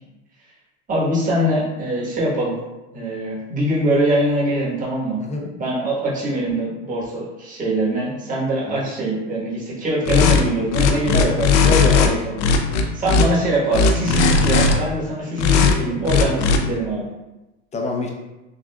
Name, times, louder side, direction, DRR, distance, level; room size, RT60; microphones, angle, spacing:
voice 1, 0.9-2.6 2.9-5.2 5.6-12.2 12.9-17.1, right 1 dB, 25° right, -6 dB, 1.4 m, -23 dB
sound 1, 10.1-10.4 10.7-12.1 12.4-13.2 13.7-14.7 15.4-15.7 16.0-16.6, left 4 dB, 85° left, 0.6 m, -16 dB
voice 2, 11.6-12.1 13.1-13.3 17.7-18.1, left 2 dB, 20° left, 0 dB, 0.5 m, -24 dB
6.3 x 2.4 x 2.3 m, 1.0 s
supercardioid pair, 125°, 34 cm